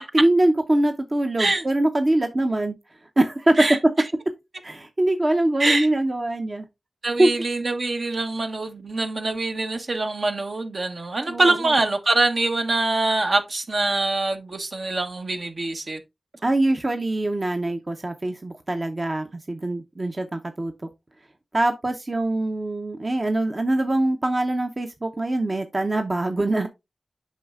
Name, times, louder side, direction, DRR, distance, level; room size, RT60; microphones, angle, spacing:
voice 1, 0.1-2.8 3.2-3.5 4.6-6.7 7.2-7.3 11.3-11.8 16.4-20.7 21.5-26.7, right 1 dB, 40° right, 0.7 m, -23 dB
voice 2, 7.0-16.0, right 2 dB, 65° right, 1.0 m, -24 dB
8.2 x 5.5 x 2.4 m
cardioid pair, 50°, 0 cm